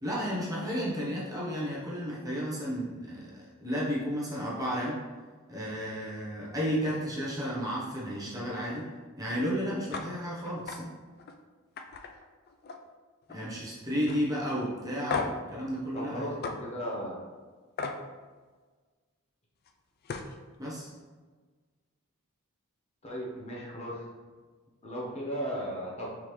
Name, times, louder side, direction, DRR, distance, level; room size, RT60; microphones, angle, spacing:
voice 1, 0.0-5.0 5.5-8.9 9.2-10.9 13.3-16.4 20.6-20.9, equal, 15° right, -6 dB, 0.9 m, -33 dB
sound 1, 9.9-10.1 10.4-10.8 11.2-11.4 11.8-12.9 13.2-13.6 14.1-14.2 15.1-15.5 16.4-16.6 17.8-18.0 19.7-19.8 20.0-20.3, left 4 dB, 45° left, 0.3 m, -35 dB
voice 2, 15.9-17.3 23.0-24.0 24.8-26.1, equal, 30° left, -4 dB, 0.8 m, -36 dB
4.5 x 3.5 x 3.1 m, 1.4 s
head